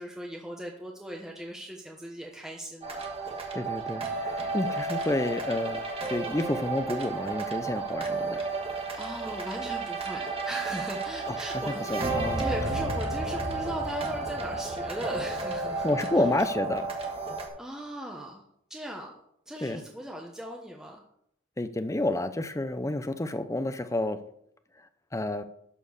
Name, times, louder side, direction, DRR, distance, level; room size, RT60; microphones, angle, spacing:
voice 1, 0.0-3.5 4.4-4.6 8.5-15.9 16.1-16.2 17.6-18.4 18.7-19.1 19.5-21.0, equal, 5° right, -1 dB, 0.9 m, -39 dB
sound 1, 2.8-17.5, right 3 dB, 30° right, 1.4 m, -32 dB
voice 2, 3.5-5.8 6.1-8.4 11.3-11.4 11.7-12.5 15.8-17.2 19.6-19.8 21.6-24.2 25.1-25.4, left 1 dB, 15° left, 11 dB, 0.5 m, -29 dB
11.5 x 4.4 x 7.0 m, 0.72 s
head